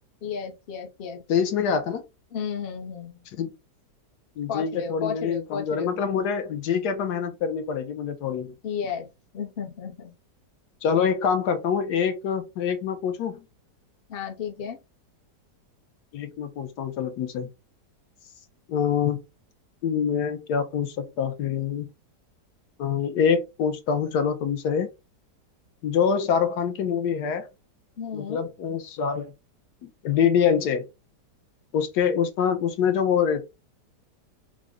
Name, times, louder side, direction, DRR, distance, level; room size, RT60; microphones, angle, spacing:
voice 1, 0.2-1.2 2.3-3.2 4.5-5.9 8.6-9.1 9.3-10.1 14.1-14.8 28.0-28.5, left 7 dB, 55° left, 0.6 m, -33 dB
voice 2, 1.3-2.0 3.4-3.5 4.4-8.5 10.8-13.4 16.1-17.5 18.7-19.2 19.8-21.9 22.8-24.9 25.8-27.5 28.1-29.3 30.0-30.8 31.7-33.4, left 7 dB, 75° left, 1.1 m, -25 dB
3.7 x 2.1 x 3.4 m
omnidirectional pair, 1.9 m